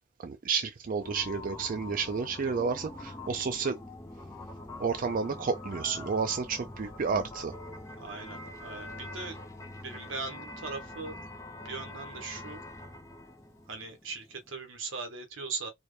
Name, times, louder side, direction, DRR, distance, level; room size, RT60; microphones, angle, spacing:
voice 1, 0.2-3.8 4.8-7.5, right 5 dB, 45° right, 0.4 m, -31 dB
sound 1, 1.0-14.5, left 2 dB, 15° left, 0.7 m, -44 dB
voice 2, 8.0-9.4 9.8-11.2 11.6-12.6 13.7-15.7, right 4 dB, 75° right, 1.1 m, -39 dB
4.3 x 2.2 x 3.2 m
head